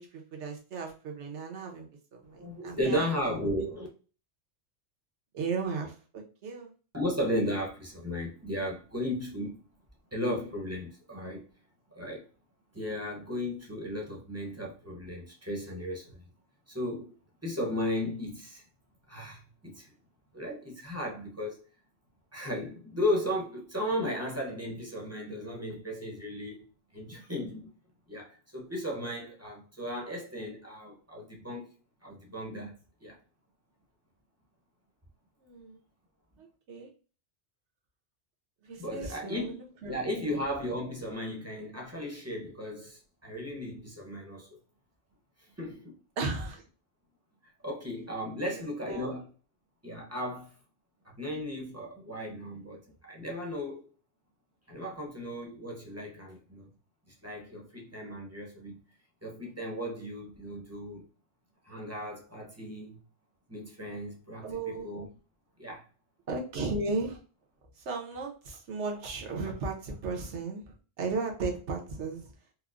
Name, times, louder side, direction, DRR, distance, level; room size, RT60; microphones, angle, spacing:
voice 1, 0.0-3.1 5.3-6.7 35.4-35.8 36.4-36.9 38.6-40.0 46.2-46.6 48.5-49.1 64.4-64.9 66.3-67.2 67.8-72.3, right 3 dB, 80° right, 1.1 m, -36 dB
voice 2, 2.4-3.9 6.9-9.6 10.1-11.4 11.9-12.3 12.7-16.3 16.7-17.1 17.4-18.6 19.1-19.9 20.3-21.7 22.3-26.6 26.9-27.7 28.1-31.7 32.0-33.2 38.8-39.6 39.9-44.6 45.6-46.0 47.4-49.2 49.8-50.5 51.0-53.8 54.7-56.7 57.1-58.8 59.2-61.0 61.6-63.0 63.5-65.1 65.6-65.9, left 1 dB, 15° right, 0.6 m, -35 dB
4.4 x 2.0 x 2.4 m
omnidirectional pair, 1.2 m